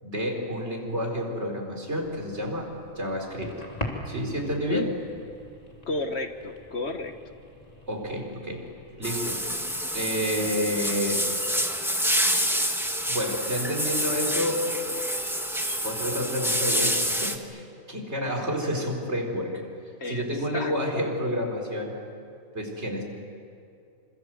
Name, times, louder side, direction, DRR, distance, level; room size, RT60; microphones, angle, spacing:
voice 1, 0.0-3.6 4.1-4.9 7.9-8.6 9.0-9.4 9.9-11.2 13.1-14.7 15.8-17.6 17.9-19.6 20.1-21.9 22.5-23.0, equal, 50° right, 1 dB, 4.9 m, -29 dB
sound 1, 1.9-10.1, left 1 dB, 25° left, 3.4 m, -42 dB
voice 2, 4.4-4.9 5.9-7.1 20.0-20.7, left 2 dB, 50° left, 7 dB, 1.6 m, -32 dB
sound 2, 9.0-17.4, equal, ahead, 1.5 m, -27 dB
27.5 x 27.0 x 7.9 m, 2.5 s
omnidirectional pair, 1.5 m